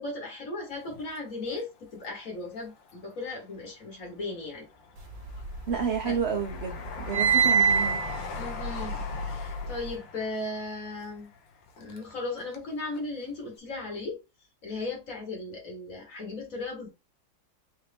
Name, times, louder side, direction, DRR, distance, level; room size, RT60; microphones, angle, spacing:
voice 1, 0.0-4.6 6.0-6.2 8.4-8.9 9.3-11.3 11.8-14.2 14.6-16.9, left 2 dB, 50° left, 2.0 m, -36 dB
Train, 0.7-2.0 2.4-3.4 3.9-12.7 12.9-13.0, left 4 dB, 85° left, 1.6 m, -42 dB
sound 1, 5.1-6.2 6.5-9.9, right 6 dB, 85° right, 1.8 m, -26 dB
voice 2, 5.7-8.0, right 6 dB, 65° right, 0.6 m, -30 dB
4.5 x 2.8 x 3.4 m
omnidirectional pair, 2.0 m